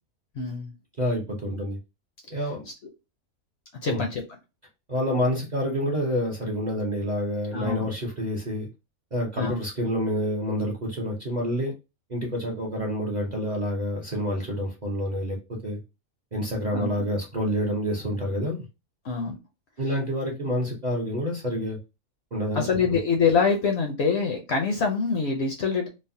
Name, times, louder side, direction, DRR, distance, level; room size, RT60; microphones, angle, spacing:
voice 1, 0.4-0.7 3.8-4.2 7.5-7.9 9.4-9.6 16.7-17.0 19.0-19.4 22.5-25.9, left 5 dB, 60° left, 2 dB, 0.7 m, -25 dB
voice 2, 1.0-1.8 2.3-2.7 3.9-4.0 4.9-8.7 9.1-11.7 12.1-15.8 16.3-18.6 19.8-21.8 22.3-22.6, equal, 45° right, -1 dB, 0.6 m, -28 dB
3.2 x 2.0 x 2.6 m, 0.27 s
omnidirectional pair, 1.5 m